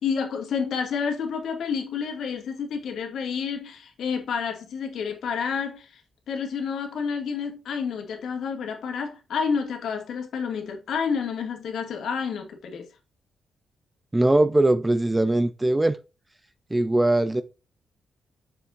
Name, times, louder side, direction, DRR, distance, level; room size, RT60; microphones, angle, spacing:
voice 1, 0.0-6.0 6.3-12.9, left 6 dB, 80° left, 2.2 m, -29 dB
voice 2, 14.1-16.0 16.7-17.4, right 2 dB, 15° right, 0.5 m, -21 dB
6.9 x 6.0 x 2.6 m
cardioid pair, 125°, 0 cm